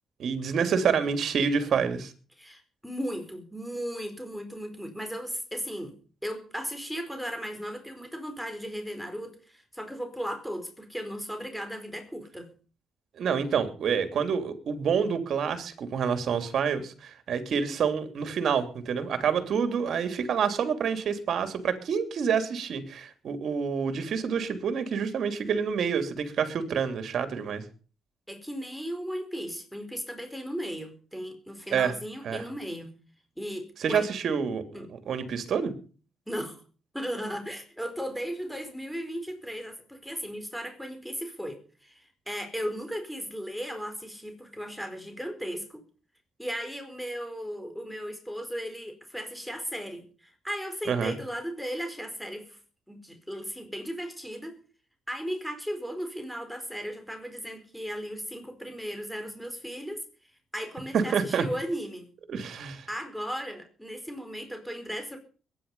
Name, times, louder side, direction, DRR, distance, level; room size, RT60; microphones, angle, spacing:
voice 1, 0.2-2.1 13.2-27.6 31.7-31.9 32.2-32.4 33.8-34.6 34.9-35.7 50.9-51.1 60.9-61.5 62.3-62.9, right 6 dB, 60° right, 9 dB, 3.0 m, -28 dB
voice 2, 2.4-6.0 6.2-12.5 28.3-32.9 33.4-34.1 34.7-34.9 36.3-36.6 36.9-45.8 46.4-52.6 52.9-54.5 55.1-60.0 60.5-62.1 62.9-65.2, equal, ahead, 5 dB, 4.5 m, -36 dB
22.0 x 10.0 x 5.6 m, 0.39 s
cardioid pair, 90°, 0 cm